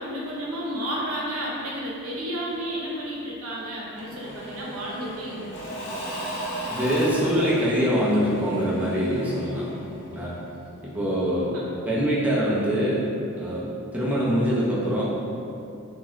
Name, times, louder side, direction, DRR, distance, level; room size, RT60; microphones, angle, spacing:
voice 1, 0.0-5.5, equal, 90° right, -5 dB, 0.7 m, -32 dB
Engine / Mechanisms / Drill, 4.0-10.7, right 1 dB, 60° left, 0.6 m, -36 dB
voice 2, 6.7-9.7 10.1-10.3 10.8-11.5 11.8-13.0 13.3-13.7 13.9-15.0, equal, 5° right, -7 dB, 0.4 m, -24 dB
2.8 x 2.4 x 2.9 m, 2.7 s
head